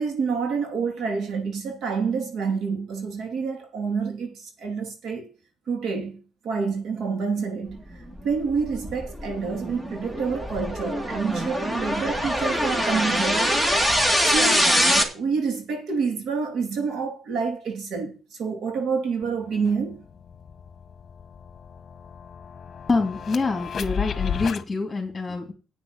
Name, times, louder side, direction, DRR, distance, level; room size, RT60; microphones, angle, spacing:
voice 1, 0.0-5.3 5.7-7.8 8.2-13.8 14.2-20.0, right 5 dB, 70° right, 3.2 m, -28 dB
sound 1, 8.1-15.0, equal, 15° right, 2.0 m, -24 dB
sound 2, 19.2-19.3 19.6-24.6, left 7 dB, 50° left, 1.0 m, -34 dB
voice 2, 22.9-25.5, left 3 dB, 25° left, 3.0 m, -26 dB
8.9 x 6.0 x 8.3 m
cardioid pair, 90°, 0 cm